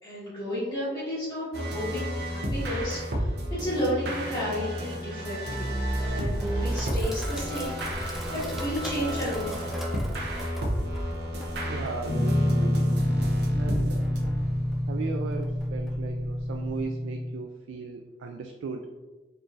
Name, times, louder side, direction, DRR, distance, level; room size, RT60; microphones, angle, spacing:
voice 1, 0.0-5.7 6.0-9.8, equal, 20° left, -14 dB, 1.2 m, -32 dB
sound 1, 1.5-14.8, equal, 55° right, 0.7 m, -32 dB
Sink (filling or washing), 6.0-16.8, equal, ahead, 0.4 m, -41 dB
voice 2, 11.6-13.0 13.5-14.1 14.9-18.9, right 4 dB, 75° right, 4 dB, 0.3 m, -37 dB
Guitar, 12.1-17.3, left 1 dB, 80° left, 0.9 m, -27 dB
4.8 x 3.1 x 2.4 m, 1.2 s
head